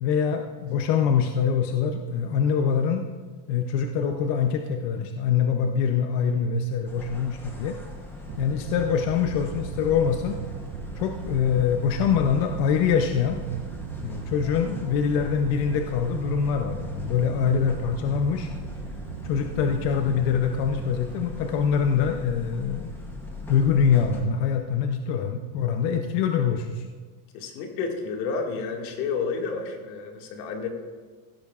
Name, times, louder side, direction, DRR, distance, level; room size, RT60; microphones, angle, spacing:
voice 1, 0.0-3.0 3.5-7.8 8.4-10.4 11.0-13.4 14.0-18.5 19.2-22.9 23.5-26.8, left 7 dB, 45° left, 5 dB, 0.7 m, -24 dB
sound 1, 6.9-24.2, left 2 dB, 5° left, 0.8 m, -40 dB
sound 2, 8.3-21.0, right 9 dB, 65° right, 0.8 m, -38 dB
voice 2, 27.3-30.7, left 5 dB, 75° left, 2 dB, 2.1 m, -30 dB
15.5 x 12.0 x 2.4 m, 1.5 s
supercardioid pair, 165°, 50 cm